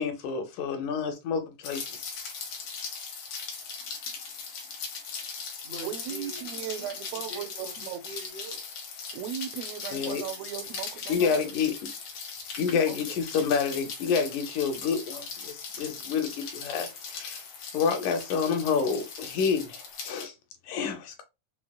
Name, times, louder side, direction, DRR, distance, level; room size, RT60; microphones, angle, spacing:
voice 1, 0.0-2.1 9.9-10.2 11.1-11.7 12.6-17.4 17.7-20.3 20.7-21.2, left 6 dB, 85° left, 2.2 m, -28 dB
Rain, 1.6-20.3, left 5 dB, 65° left, 1.6 m, -39 dB
voice 2, 3.8-4.2 4.7-4.8 5.6-6.4 6.7-8.6, right 1 dB, 45° left, 1.1 m, -45 dB
voice 3, 5.8-8.0 9.1-11.5 12.8-13.5, right 11 dB, 80° right, 1.5 m, -38 dB
5.8 x 2.0 x 2.2 m
omnidirectional pair, 3.4 m